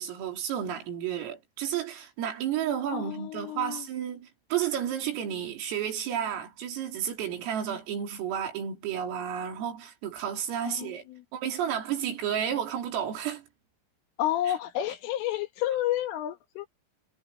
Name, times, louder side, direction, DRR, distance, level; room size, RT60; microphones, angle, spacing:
voice 1, 0.0-11.0 11.3-13.4 14.5-14.6, right 9 dB, 75° right, 6.6 m, -32 dB
voice 2, 2.9-3.9 10.7-11.2 14.2-16.7, left 12 dB, 75° left, 4.3 m, -31 dB
omnidirectional pair, 6.0 m